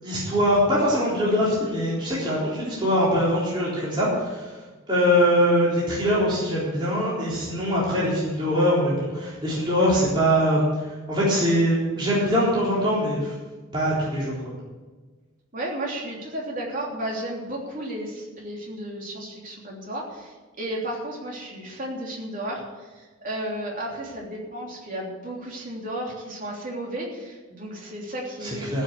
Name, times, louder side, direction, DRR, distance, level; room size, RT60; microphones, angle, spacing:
voice 1, 0.0-4.6 4.9-13.3 13.7-14.4 28.4-28.8, equal, 25° right, -8 dB, 3.8 m, -22 dB
voice 2, 15.5-28.8, right 1 dB, 45° right, -2 dB, 3.3 m, -33 dB
15.0 x 6.4 x 8.5 m, 1.3 s
head